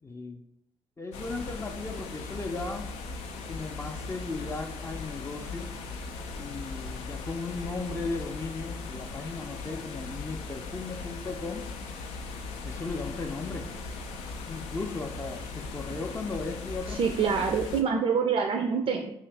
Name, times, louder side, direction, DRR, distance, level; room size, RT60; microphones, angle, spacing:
voice 1, 0.0-0.4 1.0-2.9 3.5-5.7 6.4-11.7 12.6-13.7 14.5-17.4, left 3 dB, 25° left, 2 dB, 0.4 m, -36 dB
sound 1, 1.1-17.8, left 4 dB, 80° left, 0.4 m, -39 dB
voice 2, 16.9-19.1, right 6 dB, 55° right, 3 dB, 0.3 m, -26 dB
2.8 x 2.5 x 3.3 m, 0.79 s
supercardioid pair, 50°, 11 cm